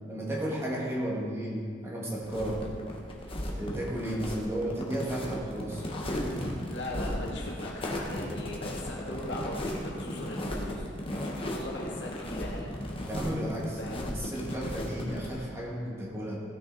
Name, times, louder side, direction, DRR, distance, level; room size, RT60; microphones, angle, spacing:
voice 1, 0.1-2.7 3.6-5.8 13.1-16.4, right 1 dB, 15° right, -4 dB, 1.8 m, -33 dB
sound 1, 2.2-15.4, left 1 dB, 30° left, 1.3 m, -36 dB
voice 2, 6.6-10.9 11.2-12.7 13.8-14.0, left 1 dB, 70° left, -3 dB, 1.9 m, -39 dB
16.0 x 6.1 x 4.0 m, 2.1 s
head